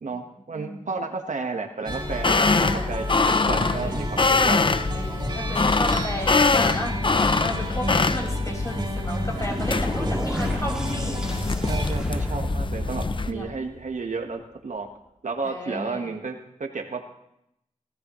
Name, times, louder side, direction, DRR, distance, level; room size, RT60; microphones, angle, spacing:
voice 1, 0.0-4.6 11.7-14.9 15.2-17.0, right 4 dB, 75° right, 4 dB, 1.3 m, -32 dB
voice 2, 0.5-0.9 2.5-2.9 3.4-4.1 4.9-11.2 13.3-13.4 15.4-16.1, left 1 dB, 25° left, -1 dB, 4.9 m, -33 dB
sound 1, 1.8-11.9, right 1 dB, 35° right, 3.3 m, -33 dB
sound 2, 1.9-13.3, left 3 dB, 40° left, 0.6 m, -24 dB
sound 3, 8.8-14.2, equal, 5° right, 2.1 m, -33 dB
19.5 x 13.5 x 3.1 m, 0.79 s
wide cardioid pair, 60°, 13 cm